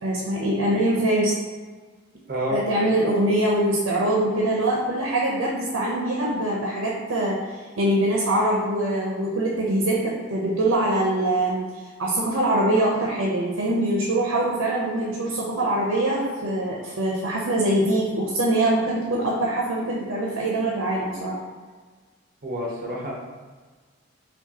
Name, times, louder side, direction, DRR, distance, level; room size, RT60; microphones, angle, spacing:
voice 1, 0.0-1.4 2.5-7.4 7.8-11.6 12.0-21.4, right 1 dB, 85° right, -3 dB, 0.6 m, -23 dB
voice 2, 22.4-23.1, equal, 45° right, -2 dB, 0.8 m, -28 dB
4.8 x 2.4 x 2.8 m, 1.4 s
head